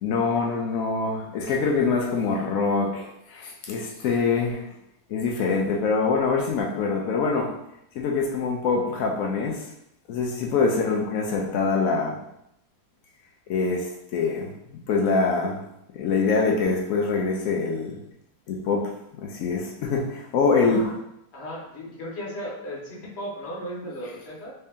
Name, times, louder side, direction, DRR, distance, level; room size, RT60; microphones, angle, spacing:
voice 1, 0.0-4.7 5.1-7.5 7.9-9.7 10.1-12.2 13.5-15.6 15.9-18.0 18.5-18.9 19.2-20.9, left 4 dB, 85° left, 0 dB, 0.7 m, -24 dB
voice 2, 10.5-10.8 20.6-20.9 21.3-24.5, equal, 40° left, -4 dB, 1.1 m, -36 dB
3.3 x 2.8 x 3.5 m, 0.79 s
omnidirectional pair, 2.0 m